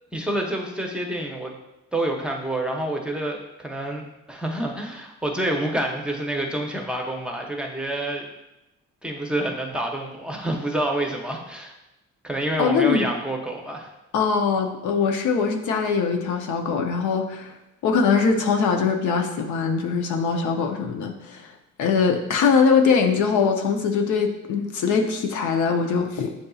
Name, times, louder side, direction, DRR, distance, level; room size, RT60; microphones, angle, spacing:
voice 1, 0.1-1.5 1.9-8.3 9.0-11.7 12.2-13.9, right 1 dB, 5° right, 0 dB, 0.7 m, -28 dB
voice 2, 12.6-13.1 14.1-17.5 17.8-21.5 21.8-26.3, left 5 dB, 80° left, 4 dB, 0.7 m, -22 dB
7.8 x 2.6 x 2.3 m, 0.92 s
cardioid pair, 90°, 30 cm